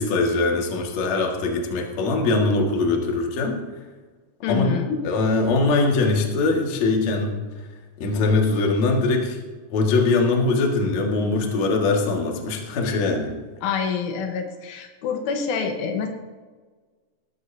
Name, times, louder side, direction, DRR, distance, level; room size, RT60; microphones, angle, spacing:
voice 1, 0.0-3.6 4.5-4.8 5.0-7.3 8.0-9.4 9.7-13.3, left 3 dB, 50° left, 0 dB, 2.4 m, -22 dB
voice 2, 4.4-5.0 13.6-16.1, left 6 dB, 80° left, 4 dB, 3.6 m, -26 dB
19.5 x 13.5 x 2.8 m, 1.4 s
omnidirectional pair, 5.8 m